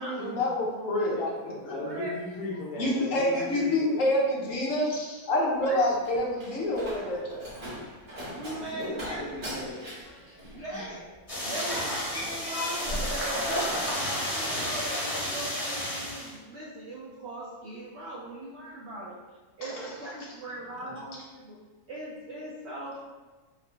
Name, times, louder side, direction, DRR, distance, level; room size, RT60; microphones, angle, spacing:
voice 1, 0.0-1.2 1.6-1.7 2.8-4.9 5.3-7.5 10.1-10.2, left 1 dB, 65° left, -2 dB, 0.9 m, -27 dB
voice 2, 1.0-4.1 4.8-5.2 5.8-5.9 6.6-6.7 7.2-7.3 7.6-7.8 8.5-9.8 10.5-10.9 19.6-20.4 20.8-21.0, left 1 dB, 80° left, -3 dB, 1.4 m, -38 dB
voice 3, 1.8-2.1 3.3-3.7 5.6-5.8 8.3-9.5 10.5-11.1 11.4-19.2 19.6-21.5 21.9-23.0, right 1 dB, 70° right, -6 dB, 0.6 m, -39 dB
Slam, 5.5-14.0 14.3-14.8, equal, 35° right, 1.2 m, -41 dB
sound 1, 11.3-16.3, equal, 30° left, 0.8 m, -31 dB
3.8 x 2.1 x 3.2 m, 1.3 s
omnidirectional pair, 1.6 m